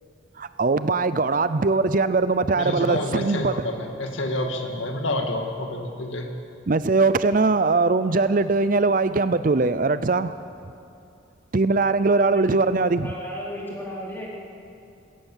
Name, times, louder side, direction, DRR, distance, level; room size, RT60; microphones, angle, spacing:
voice 1, 0.4-3.5 6.7-10.4 11.5-13.1, right 3 dB, 45° right, 13 dB, 0.5 m, -21 dB
voice 2, 2.6-6.3, left 1 dB, 80° left, 4 dB, 2.1 m, -28 dB
voice 3, 12.2-14.3, equal, 10° left, -5 dB, 4.2 m, -35 dB
21.5 x 17.0 x 7.3 m, 2.5 s
head